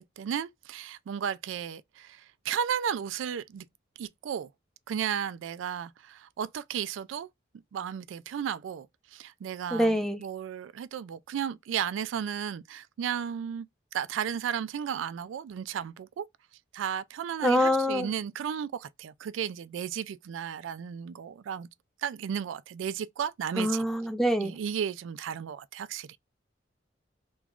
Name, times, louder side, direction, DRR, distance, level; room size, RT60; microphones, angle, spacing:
voice 1, 0.0-3.6 4.0-4.5 4.9-7.3 7.7-8.9 9.1-13.7 13.9-16.2 16.7-21.7 22.0-23.8 24.4-26.2, right 8 dB, 85° right, 0.3 m, -34 dB
voice 2, 9.7-10.2 17.4-18.1 23.6-24.6, equal, ahead, 0.4 m, -25 dB
3.0 x 2.4 x 3.5 m
head